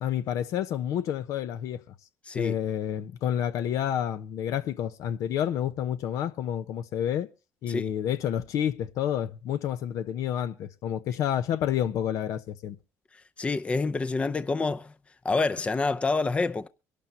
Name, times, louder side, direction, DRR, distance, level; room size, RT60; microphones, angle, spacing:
voice 1, 0.0-1.8 2.3-7.3 7.6-12.8, left 10 dB, 70° left, 0.9 m, -29 dB
voice 2, 13.4-14.9 15.2-16.7, left 3 dB, 20° left, 0.6 m, -27 dB
24.0 x 12.0 x 2.8 m
cardioid pair, 100°, 6 cm